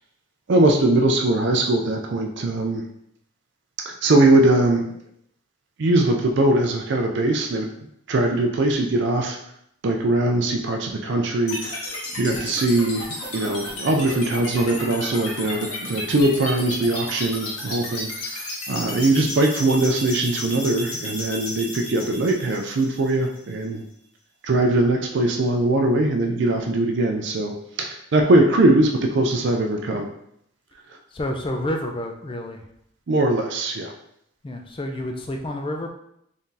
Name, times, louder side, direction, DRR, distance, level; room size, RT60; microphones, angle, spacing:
voice 1, 0.5-2.9 3.9-4.9 5.8-7.7 8.1-9.4 9.8-23.8 24.4-30.1 33.1-33.9, right 2 dB, 55° right, 3 dB, 0.4 m, -21 dB
sound 1, 11.5-23.5, left 1 dB, 90° left, 1.2 m, -33 dB
voice 2, 31.1-32.6 34.4-35.9, left 1 dB, 25° left, 3 dB, 0.4 m, -29 dB
3.6 x 2.7 x 3.7 m, 0.74 s
head